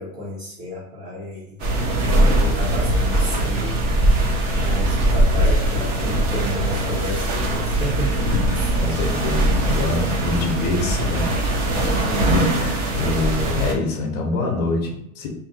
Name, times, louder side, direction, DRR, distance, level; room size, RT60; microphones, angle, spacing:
voice 1, 0.0-3.8 4.5-8.7 12.0-12.5, equal, 75° right, -9 dB, 1.3 m, -32 dB
sound 1, 1.6-13.7, right 1 dB, 25° right, 0.4 m, -21 dB
sound 2, 5.2-12.0, left 4 dB, 5° right, 0.8 m, -36 dB
voice 2, 8.3-11.6 12.2-15.3, left 3 dB, 35° left, -1 dB, 0.6 m, -26 dB
2.6 x 2.5 x 3.9 m, 0.79 s
hypercardioid pair, 130°, 41 cm